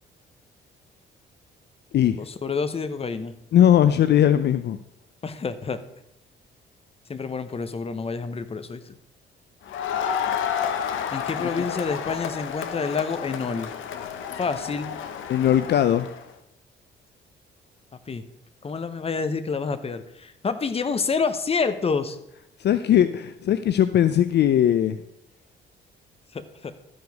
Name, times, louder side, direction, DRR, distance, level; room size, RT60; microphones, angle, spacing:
voice 1, 2.2-3.3 5.2-5.8 7.1-9.0 11.1-13.7 14.4-14.9 18.1-18.2 18.6-22.2 26.3-26.7, left 5 dB, 30° left, 11 dB, 0.9 m, -28 dB
voice 2, 3.5-4.8 15.3-16.1 22.6-25.0, left 10 dB, 60° left, 12 dB, 0.5 m, -19 dB
Crowd, 9.7-16.2, left 8 dB, 80° left, 0.9 m, -30 dB
12.5 x 4.8 x 5.3 m, 0.82 s
cardioid pair, 90°, 20 cm